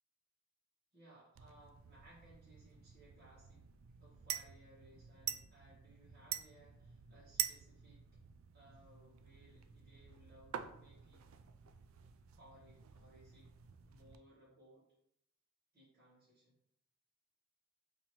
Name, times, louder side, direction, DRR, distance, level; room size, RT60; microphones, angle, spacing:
voice 1, 0.9-3.6 3.9-8.0 8.5-11.2 12.4-13.5 13.8-14.8 15.7-16.5, right 1 dB, 55° right, -9 dB, 1.4 m, -63 dB
sound 1, 1.4-14.2, right 10 dB, 80° right, 0.3 m, -47 dB
4.2 x 2.9 x 3.0 m, 0.72 s
head